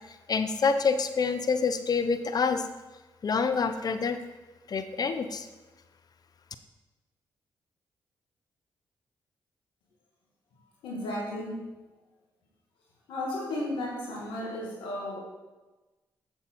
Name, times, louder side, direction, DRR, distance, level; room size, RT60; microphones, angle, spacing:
voice 1, 0.1-2.6 3.2-4.2 4.7-5.5, left 5 dB, 50° left, 9 dB, 0.7 m, -27 dB
voice 2, 10.8-11.7 13.1-15.2, left 1 dB, 90° left, -2 dB, 2.3 m, -34 dB
7.7 x 7.3 x 4.6 m, 1.1 s
supercardioid pair, 50°, 8 cm